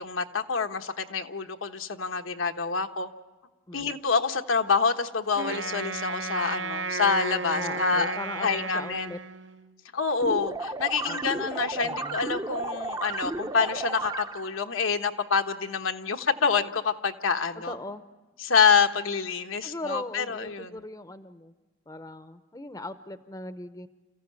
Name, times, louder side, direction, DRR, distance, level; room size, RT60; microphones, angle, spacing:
voice 1, 0.0-3.1 3.7-9.2 9.9-17.7 18.4-20.7, left 5 dB, 85° left, 6 dB, 1.2 m, -27 dB
Wind instrument woodwind instrument, 5.4-9.8, right 4 dB, 65° right, 0.9 m, -33 dB
voice 2, 7.6-9.2 11.0-11.2 11.7-12.2 17.5-18.0 19.6-21.5 21.9-23.9, left 2 dB, 15° left, 11 dB, 0.7 m, -39 dB
sound 1, 10.2-14.6, right 2 dB, 20° right, 0.7 m, -33 dB
28.5 x 15.0 x 9.5 m, 1.2 s
head